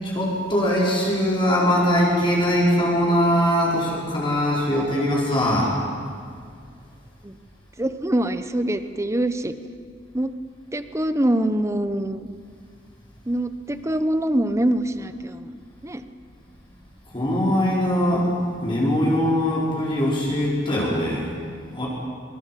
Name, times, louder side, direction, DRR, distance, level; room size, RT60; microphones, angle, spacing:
voice 1, 0.0-5.7 17.1-18.3 18.6-21.3 21.7-21.9, equal, 25° left, -5 dB, 5.2 m, -21 dB
voice 2, 7.8-9.5 10.1-10.3 10.7-12.3 13.3-15.5 15.8-16.0, right 1 dB, 15° right, 10 dB, 0.9 m, -24 dB
23.5 x 22.5 x 7.6 m, 2.1 s
head